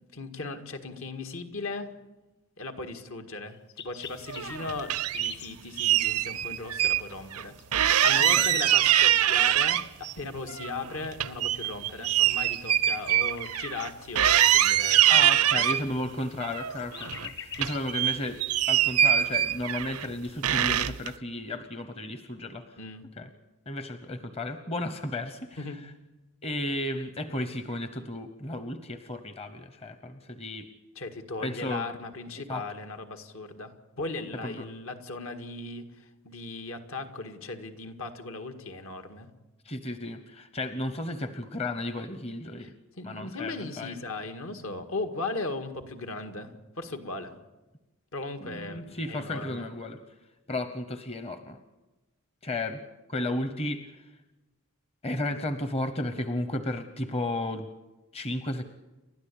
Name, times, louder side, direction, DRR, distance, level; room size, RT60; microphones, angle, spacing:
voice 1, 0.1-1.9 2.6-15.2 15.5-15.6 22.8-23.0 25.6-25.8 31.0-39.3 42.6-42.7 43.0-47.3 48.1-49.7, left 3 dB, 70° left, 7 dB, 1.9 m, -37 dB
sound 1, 3.5-5.6 7.6-9.6 12.3-13.9 16.3-17.9, left 7 dB, 50° left, 1.7 m, -44 dB
sound 2, 4.3-5.3 5.8-7.0 7.3-7.4 7.7-10.1 10.5-13.9 14.2-15.8 16.4-17.3 17.5-20.1 20.4-21.1, right 11 dB, 85° right, 0.7 m, -24 dB
voice 2, 8.0-8.6 15.1-18.4 18.7-22.6 23.2-23.3 23.7-25.6 26.4-30.6 31.4-31.9 32.5-32.6 34.4-34.6 39.6-42.7 43.0-44.0 48.4-50.0 50.5-51.6 52.4-52.8 53.1-53.9 55.0-57.7 58.1-58.6, left 1 dB, 25° left, 9 dB, 0.9 m, -33 dB
29.5 x 12.5 x 8.5 m, 1.1 s
head